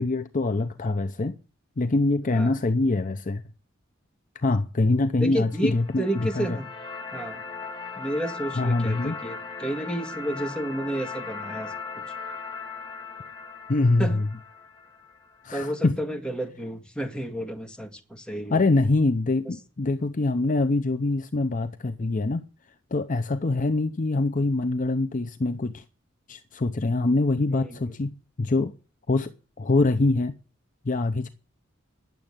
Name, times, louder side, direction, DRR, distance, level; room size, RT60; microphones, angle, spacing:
voice 1, 0.0-1.4 1.8-3.4 4.3-6.6 8.6-9.2 13.7-14.2 15.4-16.0 18.5-22.4 22.9-25.8 26.3-28.1 28.4-28.7 29.1-30.4 30.8-31.3, left 2 dB, 40° left, 0.7 m, -24 dB
voice 2, 5.2-6.7 7.1-7.4 8.0-11.7 14.0-14.2 15.5-18.6 19.5-19.6 27.5-27.9, right 1 dB, 5° left, 1.9 m, -31 dB
sound 1, 5.5-15.5, left 4 dB, 25° left, 2.1 m, -38 dB
10.5 x 7.7 x 9.7 m
head